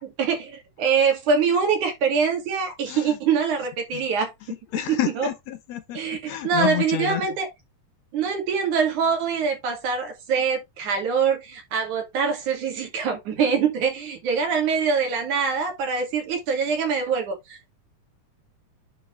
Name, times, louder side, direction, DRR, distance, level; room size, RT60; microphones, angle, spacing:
voice 1, 0.0-4.3 4.9-5.3 5.9-7.5 8.1-17.6, right 6 dB, 80° right, 3.8 m, -24 dB
voice 2, 2.9-3.2 3.9-4.1 4.7-6.0 6.3-7.2, left 13 dB, 70° left, 2.0 m, -29 dB
9.5 x 4.5 x 3.3 m
omnidirectional pair, 3.4 m